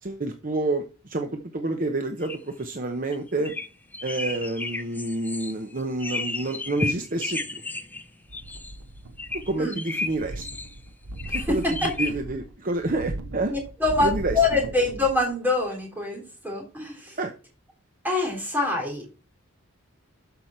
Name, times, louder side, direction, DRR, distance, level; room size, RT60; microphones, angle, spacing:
voice 1, 0.0-3.5 4.0-7.6 9.3-10.4 11.3-13.5 14.0-14.4 17.2-17.3, right 2 dB, 40° right, 6 dB, 0.8 m, -28 dB
sound 1, 2.2-2.4 3.1-3.2 3.4-3.7 3.9-8.1 8.3-8.8 9.2-10.7 11.2-12.1, left 3 dB, 10° left, 0.5 m, -32 dB
sound 2, 8.3-9.7 10.0-15.3 15.7-15.8, right 1 dB, 70° right, 1.0 m, -38 dB
voice 2, 11.3-11.9 13.5-14.1 14.3-17.2 18.0-19.1, left 2 dB, 10° right, -1 dB, 3.7 m, -25 dB
12.5 x 5.9 x 4.4 m, 0.34 s
head